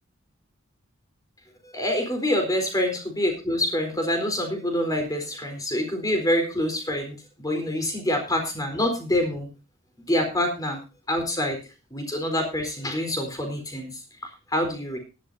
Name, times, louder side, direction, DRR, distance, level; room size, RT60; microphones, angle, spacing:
voice 1, 1.7-9.5 10.1-10.8 11.1-11.6 11.9-13.9 14.5-15.0, left 1 dB, 15° left, 4 dB, 4.0 m, -26 dB
18.0 x 12.5 x 2.7 m, 0.31 s
head